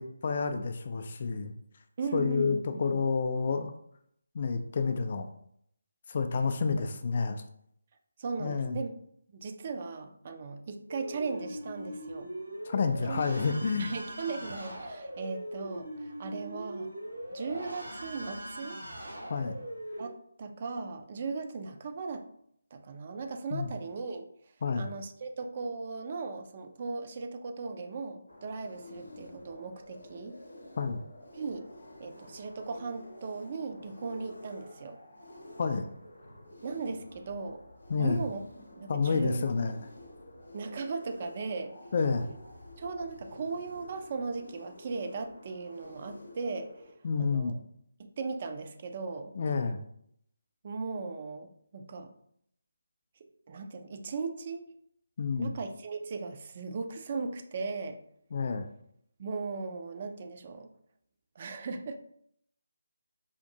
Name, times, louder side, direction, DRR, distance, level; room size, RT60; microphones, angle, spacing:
voice 1, 0.0-1.5 2.1-3.7 4.3-5.3 6.1-7.4 8.4-8.8 12.7-13.9 19.3-19.6 23.5-23.7 24.6-24.9 30.8-31.0 35.6-35.9 37.9-38.2 38.9-39.9 41.9-42.3 47.0-47.5 49.4-49.8 55.2-55.6 58.3-58.7, left 4 dB, 40° left, 7 dB, 0.3 m, -29 dB
voice 2, 2.0-3.0 8.2-8.9 9.3-12.3 13.1-13.2 13.8-16.9 17.3-18.8 20.0-20.1 20.4-22.2 22.7-24.3 24.7-30.4 31.3-31.7 32.0-35.0 36.6-37.6 38.0-38.4 38.8-39.4 40.5-41.7 42.8-46.7 47.2-47.5 48.0-49.3 50.6-52.1 53.5-54.7 55.3-58.0 59.2-60.7 61.4-62.0, right 4 dB, 35° right, 6 dB, 0.4 m, -37 dB
sound 1, 10.9-20.1, right 1 dB, 75° right, 0.9 m, -41 dB
sound 2, 28.3-46.9, left 1 dB, 70° left, 0.7 m, -50 dB
5.0 x 2.5 x 2.7 m, 0.69 s
figure-of-eight pair, 150°, 0 cm